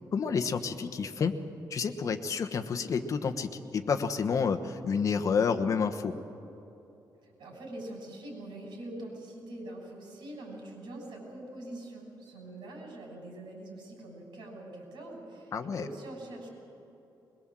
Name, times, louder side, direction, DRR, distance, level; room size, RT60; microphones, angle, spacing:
voice 1, 0.1-1.3 1.7-6.1 15.5-15.9, left 5 dB, 45° left, 7 dB, 1.2 m, -29 dB
voice 2, 7.2-16.5, right 1 dB, 85° right, 1 dB, 6.7 m, -44 dB
22.0 x 21.5 x 7.6 m, 3.0 s
wide cardioid pair, 150°, 8 cm